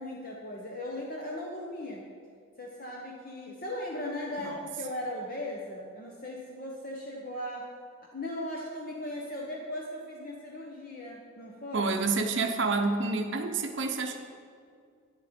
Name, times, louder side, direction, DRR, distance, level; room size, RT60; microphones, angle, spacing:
voice 1, 0.0-2.1 2.6-7.7 8.0-11.9, left 1 dB, 40° left, -2 dB, 1.0 m, -38 dB
voice 2, 11.7-14.2, right 3 dB, 55° right, 4 dB, 0.8 m, -28 dB
9.9 x 9.0 x 5.2 m, 2.2 s
head